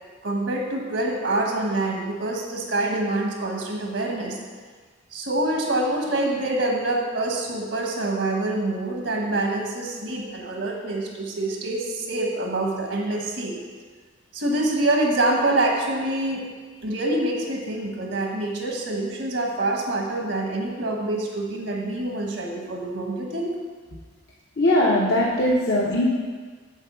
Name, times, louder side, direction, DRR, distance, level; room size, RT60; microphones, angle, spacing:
voice 1, 0.2-4.4 5.1-13.5 14.3-16.4 16.8-23.5, right 2 dB, 75° right, 0 dB, 1.4 m, -26 dB
voice 2, 24.6-26.1, left 1 dB, 55° left, -5 dB, 0.9 m, -20 dB
7.2 x 4.7 x 6.9 m, 1.5 s
head